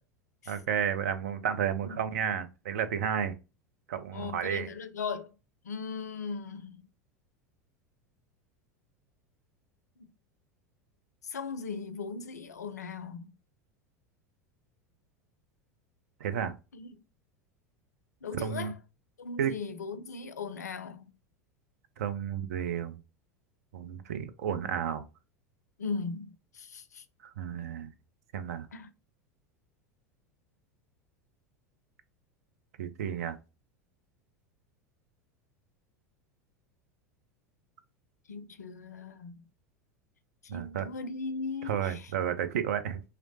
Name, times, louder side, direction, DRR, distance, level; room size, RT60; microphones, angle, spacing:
voice 1, 0.5-3.3 3.9-4.7 16.2-16.5 18.4-18.7 19.4-19.5 22.0-23.0 23.7-25.0 27.2-27.9 28.3-28.7 32.8-33.4 40.5-40.9 41.6-43.0, right 8 dB, 65° right, 0.4 m, -32 dB
voice 2, 1.8-2.4 4.1-5.3 5.6-6.8 10.0-10.1 11.2-13.3 16.7-16.9 18.2-18.7 19.2-21.1 25.8-27.0 28.7-28.9 38.3-39.4 40.4-42.1, left 4 dB, 80° left, 0.4 m, -38 dB
2.9 x 2.0 x 2.7 m
figure-of-eight pair, 80°, 9 cm